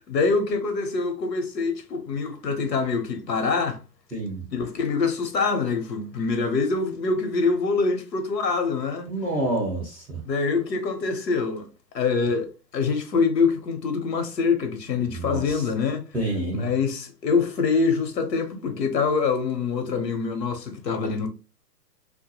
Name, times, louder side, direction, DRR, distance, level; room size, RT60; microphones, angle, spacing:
voice 1, 0.1-3.8 4.5-9.1 10.2-11.7 11.9-12.5 12.7-16.0 16.5-21.3, left 4 dB, 80° left, 0.9 m, -25 dB
voice 2, 4.1-4.4 9.1-10.2 15.1-15.6 16.1-16.7, right 2 dB, ahead, 0.3 m, -28 dB
2.1 x 2.1 x 2.9 m
hypercardioid pair, 130°, 49 cm